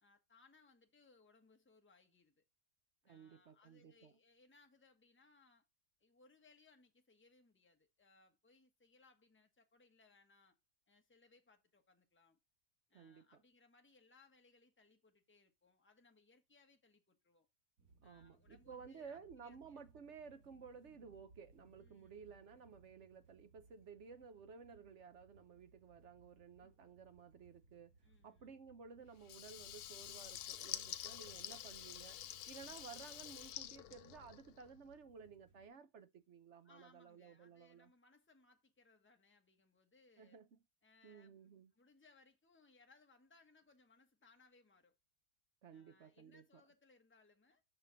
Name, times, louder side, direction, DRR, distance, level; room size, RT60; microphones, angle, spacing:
voice 1, 0.0-2.4 3.0-5.6 6.0-10.6 10.9-12.4 12.9-17.5 18.0-19.8 21.8-22.1 26.6-26.9 28.0-28.6 36.6-40.4 40.8-45.0 45.7-47.6, left 3 dB, 10° left, 1.1 m, -69 dB
voice 2, 3.0-4.1 12.9-13.2 18.0-27.9 28.2-32.2 32.5-37.9 40.2-40.5 41.0-41.7 45.6-46.4, right 6 dB, 55° right, 0.9 m, -56 dB
sound 1, 17.8-35.7, right 3 dB, 70° right, 2.5 m, -68 dB
Water tap faucet / Liquid, 29.2-34.7, left 12 dB, 80° left, 1.1 m, -48 dB
6.7 x 6.7 x 4.0 m
omnidirectional pair, 1.7 m